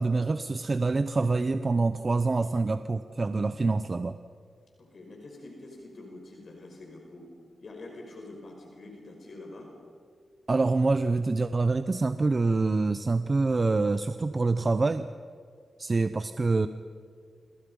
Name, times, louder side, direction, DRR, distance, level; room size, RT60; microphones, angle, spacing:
voice 1, 0.0-4.2 10.5-15.1 15.8-16.7, right 3 dB, 40° right, 10 dB, 0.8 m, -26 dB
voice 2, 4.8-7.3 7.6-9.7, left 2 dB, 60° left, 1 dB, 5.3 m, -45 dB
28.5 x 27.0 x 5.5 m, 2.2 s
cardioid pair, 80°, 0 cm